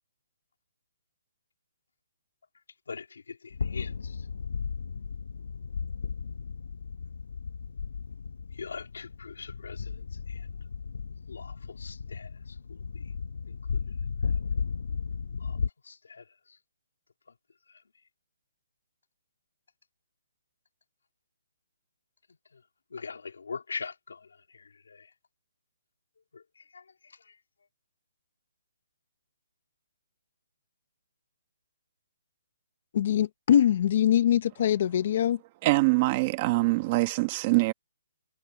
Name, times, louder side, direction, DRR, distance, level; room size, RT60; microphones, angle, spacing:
voice 1, 2.9-4.3 8.5-10.5 11.3-13.1 13.5-13.8 14.2-14.4 15.4-15.6 15.8-16.6 17.7-17.8 22.5-22.6 22.9-25.1 26.3-27.4, left 5 dB, 85° left, 2.7 m, -43 dB
sound 1, 3.5-15.7, left 5 dB, 65° left, 0.8 m, -35 dB
voice 2, 32.9-35.4, left 10 dB, 35° left, 0.7 m, -23 dB
voice 3, 35.6-37.7, right 22 dB, 20° right, 1.2 m, -24 dB
hypercardioid pair, 175°, 0 cm